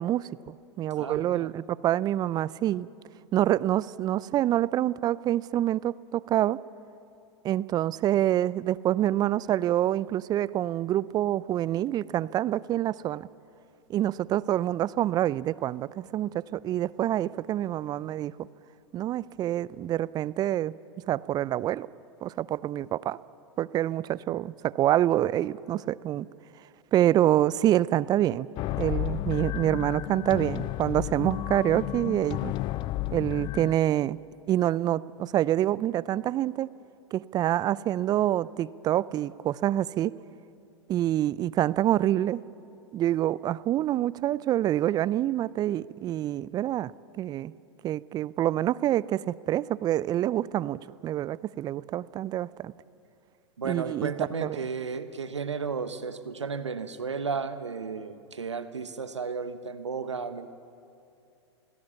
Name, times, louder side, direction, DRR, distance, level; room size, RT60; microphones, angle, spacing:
voice 1, 0.0-2.9 3.3-6.6 7.4-13.3 13.9-18.5 18.9-20.7 21.1-21.9 22.2-23.2 23.6-26.3 26.9-28.5 28.8-32.5 33.1-34.2 34.5-36.7 37.1-40.1 40.9-42.4 42.9-46.9 47.2-47.5 47.8-52.7 53.6-54.6, right 12 dB, 25° right, 20 dB, 0.5 m, -26 dB
voice 2, 1.0-1.5 53.6-60.5, right 5 dB, 90° right, 10 dB, 1.2 m, -33 dB
sound 1, 28.6-33.7, left 15 dB, 35° left, 0.4 m, -32 dB
24.5 x 17.0 x 7.1 m, 2.7 s
hypercardioid pair, 105°, 15 cm